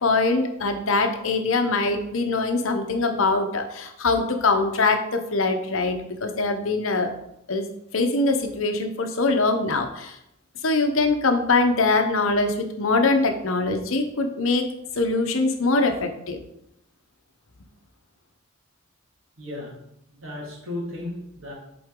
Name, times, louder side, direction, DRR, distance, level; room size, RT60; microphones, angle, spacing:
voice 1, 0.0-7.1 7.5-7.7 7.9-10.2 10.6-14.7 14.9-16.4, left 3 dB, 70° left, 6 dB, 0.8 m, -23 dB
voice 2, 19.4-19.8 20.1-21.5, left 1 dB, 70° right, -1 dB, 1.9 m, -34 dB
7.7 x 4.0 x 3.7 m, 0.80 s
head